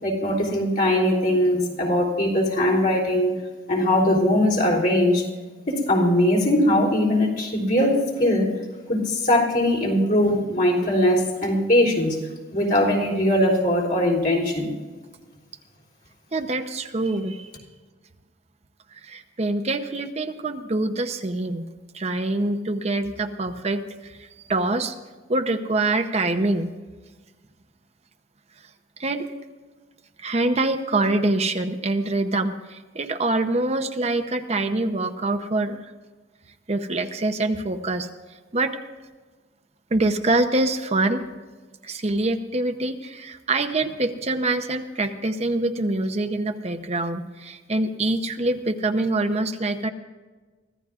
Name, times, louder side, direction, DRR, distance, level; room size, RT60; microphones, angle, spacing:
voice 1, 0.0-3.3 3.7-5.3 5.7-8.5 8.9-12.2 12.5-14.8, left 1 dB, 50° left, -2 dB, 3.5 m, -21 dB
voice 2, 16.3-17.5 18.9-21.7 21.9-24.9 25.3-26.7 29.0-29.3 30.2-35.8 36.7-38.1 38.5-38.8 39.9-41.2 41.8-49.9, right 2 dB, 35° right, 6 dB, 0.7 m, -25 dB
24.0 x 15.0 x 2.5 m, 1.4 s
head